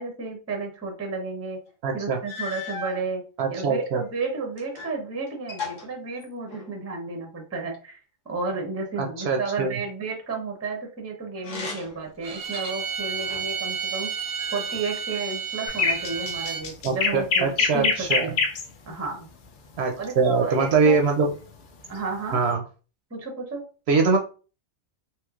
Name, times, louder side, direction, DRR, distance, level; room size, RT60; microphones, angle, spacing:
voice 1, 0.0-1.6 1.9-3.2 3.5-8.0 8.3-14.1 14.5-17.9 18.2-18.4 18.9-19.3 20.0-20.9 21.9-22.4 23.1-23.6, right 4 dB, 15° right, 1 dB, 0.5 m, -32 dB
sound 1, 1.7-1.8 2.2-3.0 3.8-5.0 5.3-6.8 11.3-12.1 12.6-13.6 14.4-15.2 15.9-16.6, left 4 dB, 90° left, 1.4 m, -38 dB
voice 2, 1.8-2.2 3.4-4.0 9.0-9.7 16.8-18.2 19.8-21.3 22.3-22.6 23.9-24.2, right 4 dB, 65° right, 3 dB, 0.7 m, -23 dB
Bowed string instrument, 12.2-16.7, right 6 dB, 90° right, 1.0 m, -31 dB
sound 2, 15.7-18.7 20.7-21.0, left 5 dB, 60° left, 0.5 m, -24 dB
3.1 x 2.9 x 2.3 m, 0.36 s
omnidirectional pair, 1.3 m